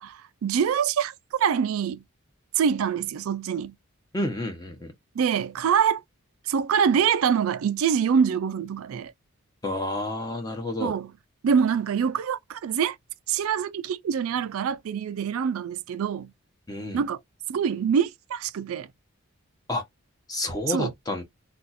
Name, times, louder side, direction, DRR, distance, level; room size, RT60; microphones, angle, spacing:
voice 1, 0.0-2.0 2.6-3.7 5.2-6.0 6.5-9.1 10.8-11.1 11.4-13.0 13.3-16.3 16.9-17.2 17.5-18.9 20.7-20.9, right 7 dB, 75° right, 0.3 m, -25 dB
voice 2, 4.1-4.9 9.6-10.9 16.7-17.0 19.7-19.8 20.3-21.2, left 1 dB, 15° left, 0.8 m, -30 dB
2.5 x 2.3 x 4.1 m
head